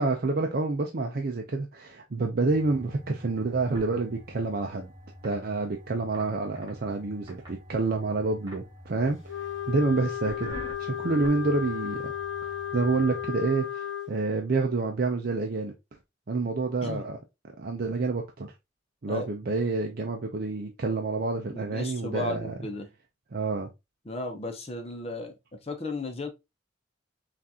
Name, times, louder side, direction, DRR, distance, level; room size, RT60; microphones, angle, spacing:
voice 1, 0.0-4.9 5.2-12.1 12.4-15.7 16.3-17.2 17.6-18.5 19.0-22.5 23.3-23.7, right 3 dB, 50° right, 0.5 m, -28 dB
sound 1, 2.4-13.3, equal, 20° right, 1.8 m, -46 dB
Wind instrument woodwind instrument, 9.3-14.1, left 10 dB, 80° left, 0.9 m, -34 dB
voice 2, 21.5-22.9 24.0-26.3, left 2 dB, 30° left, 0.7 m, -35 dB
5.8 x 2.5 x 2.7 m
head